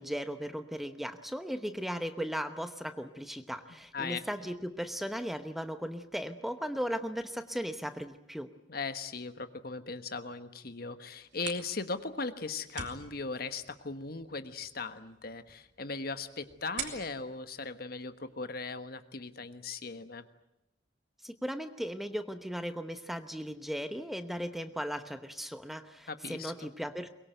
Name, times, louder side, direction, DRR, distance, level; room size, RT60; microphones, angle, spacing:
voice 1, 0.0-8.5 21.2-27.1, equal, ahead, 9 dB, 0.9 m, -37 dB
voice 2, 8.7-20.3 26.1-26.7, left 4 dB, 55° left, 10 dB, 1.4 m, -38 dB
sound 1, 11.1-18.7, right 6 dB, 75° right, 3.7 m, -47 dB
23.0 x 22.0 x 9.1 m, 0.86 s
head